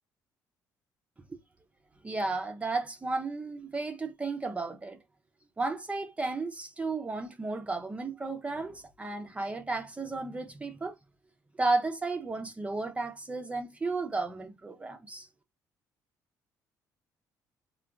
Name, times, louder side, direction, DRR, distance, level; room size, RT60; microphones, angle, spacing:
voice 1, 2.0-5.0 5.6-10.9 11.6-15.3, right 3 dB, 15° right, 0.4 m, -33 dB
3.3 x 2.2 x 2.3 m
cardioid pair, 110°, 7 cm